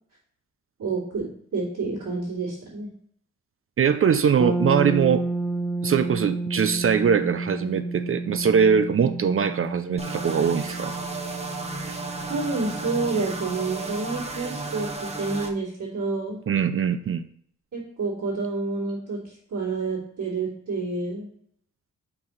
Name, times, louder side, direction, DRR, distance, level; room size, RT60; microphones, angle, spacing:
voice 1, 0.8-2.9 12.2-16.4 17.7-21.3, right 3 dB, 75° right, -11 dB, 3.1 m, -29 dB
voice 2, 3.8-5.2 5.8-11.0 16.5-17.2, right 7 dB, 45° right, 11 dB, 0.5 m, -22 dB
sound 1, 4.4-14.2, right 2 dB, 5° left, 1.0 m, -31 dB
sound 2, 10.0-15.5, right 3 dB, 20° right, 0.9 m, -34 dB
5.9 x 4.6 x 4.5 m, 0.64 s
cardioid pair, 65°, 31 cm